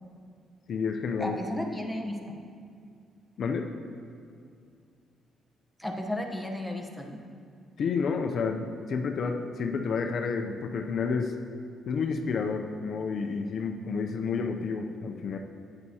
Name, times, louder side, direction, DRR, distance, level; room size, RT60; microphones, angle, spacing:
voice 1, 0.7-1.4 3.4-3.7 7.8-11.3 11.9-15.4, left 5 dB, 60° left, 4 dB, 0.5 m, -30 dB
voice 2, 1.2-2.4 5.8-7.2, left 1 dB, ahead, 2 dB, 0.9 m, -34 dB
9.3 x 8.7 x 2.8 m, 2.3 s
cardioid pair, 90°, 0 cm